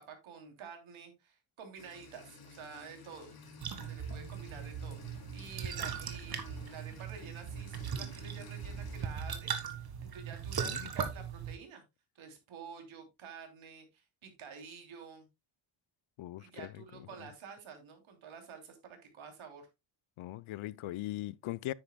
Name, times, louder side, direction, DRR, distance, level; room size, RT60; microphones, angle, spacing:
voice 1, 0.0-3.4 3.9-11.8 12.1-15.3 16.4-19.7, right 6 dB, 70° right, 3.1 m, -50 dB
sound 1, 1.8-9.1, left 4 dB, 45° left, 2.7 m, -54 dB
sound 2, 3.6-11.6, right 7 dB, 45° right, 1.8 m, -39 dB
voice 2, 16.2-16.7 20.2-21.7, left 16 dB, 75° left, 0.6 m, -40 dB
9.8 x 9.5 x 2.2 m
wide cardioid pair, 150°, 50 cm